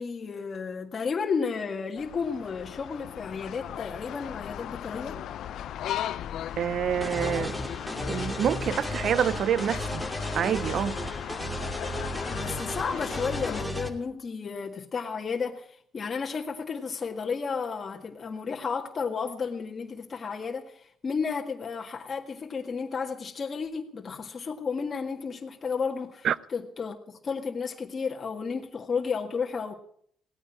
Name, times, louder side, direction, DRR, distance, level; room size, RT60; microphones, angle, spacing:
voice 1, 0.0-5.2 12.3-29.8, left 5 dB, 40° left, 1.7 m, -32 dB
sound 1, 2.0-13.6, left 11 dB, 75° left, 0.6 m, -37 dB
voice 2, 6.6-7.6 8.1-10.0 10.3-11.0 26.2-26.3, right 9 dB, 65° right, 0.6 m, -27 dB
sound 2, 7.0-13.9, equal, 5° right, 2.7 m, -34 dB
17.5 x 9.4 x 8.6 m
cardioid pair, 90°, 0 cm